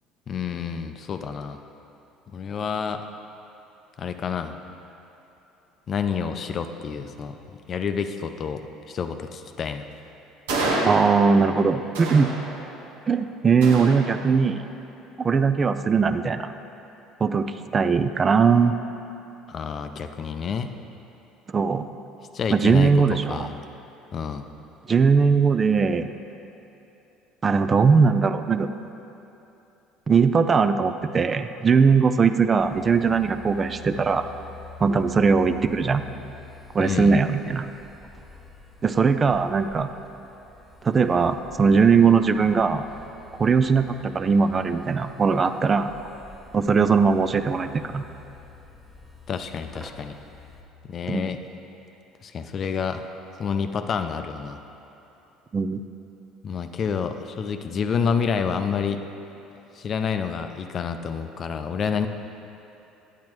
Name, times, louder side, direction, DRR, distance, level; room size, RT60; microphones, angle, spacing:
voice 1, 0.3-1.6 2.3-3.0 4.0-4.6 5.9-9.9 19.5-20.7 22.3-23.6 24.1-24.5 36.8-37.2 49.3-50.2 50.8-51.4 52.2-53.1 53.4-54.6 56.4-59.0 59.7-62.1, left 6 dB, 45° left, 8 dB, 0.5 m, -28 dB
sound 1, 10.5-11.5 11.9-12.9 13.6-14.6, right 2 dB, 80° right, 0.9 m, -29 dB
voice 2, 10.8-12.3 13.1-14.6 15.2-16.5 17.2-17.5 17.7-18.7 21.5-21.9 22.5-23.5 24.9-26.1 27.4-28.7 30.1-34.3 34.8-36.0 36.7-37.7 38.8-39.9 40.8-42.8 43.4-45.9 46.5-48.0 51.1-51.3 55.5-55.8, right 5 dB, 35° right, 10 dB, 0.3 m, -20 dB
sound 2, 32.6-50.6, left 4 dB, 10° right, 0.9 m, -47 dB
8.7 x 8.1 x 3.0 m, 2.9 s
hypercardioid pair, 65°, 0 cm